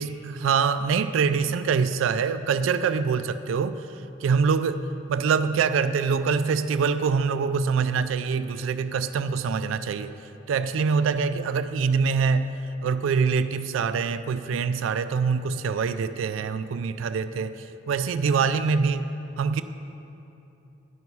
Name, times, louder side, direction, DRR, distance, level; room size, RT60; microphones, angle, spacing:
voice 1, 0.0-3.8 4.2-10.1 10.5-12.5 12.8-19.1 19.4-19.6, right 5 dB, 75° right, 12 dB, 0.3 m, -24 dB
10.5 x 5.4 x 4.6 m, 2.8 s
head